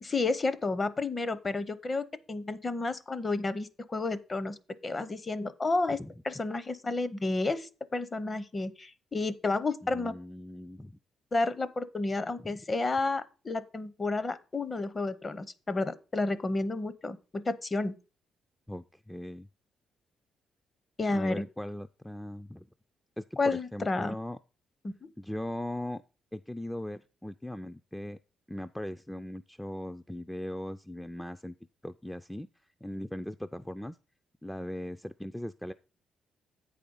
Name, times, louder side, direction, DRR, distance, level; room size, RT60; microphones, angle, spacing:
voice 1, 0.0-4.6 4.8-6.0 6.2-10.1 11.3-18.0 21.0-21.4 23.4-24.1 24.8-25.1, left 3 dB, 30° left, 0.7 m, -31 dB
voice 2, 9.8-11.0 12.4-12.6 18.7-19.5 21.1-22.7 23.2-24.4 25.2-26.0 26.3-28.2 28.5-31.6 31.8-32.5 32.8-34.0 34.4-35.7, left 1 dB, 5° left, 0.3 m, -39 dB
8.4 x 5.0 x 5.3 m
cardioid pair, 90°, 0 cm